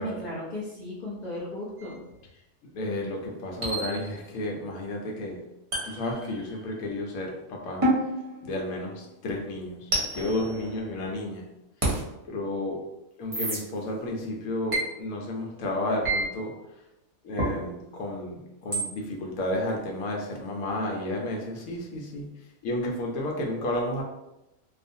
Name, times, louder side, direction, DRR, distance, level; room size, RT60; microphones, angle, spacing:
voice 1, 0.0-2.0, left 1 dB, 70° left, -5 dB, 0.4 m, -36 dB
sound 1, 1.8-1.9 3.6-4.4 5.7-6.8 7.8-9.1 9.9-11.3 11.8-12.0 13.3-13.6 14.7-14.9 16.0-16.2 17.4-17.6 18.7-18.9, right 1 dB, 30° right, 0.6 m, -29 dB
voice 2, 2.7-5.4 5.8-7.8 8.4-11.4 12.3-12.8 13.2-16.5 17.2-22.3 22.6-24.0, left 1 dB, 90° left, 0 dB, 1.1 m, -32 dB
2.4 x 2.4 x 2.6 m, 0.91 s
omnidirectional pair, 1.5 m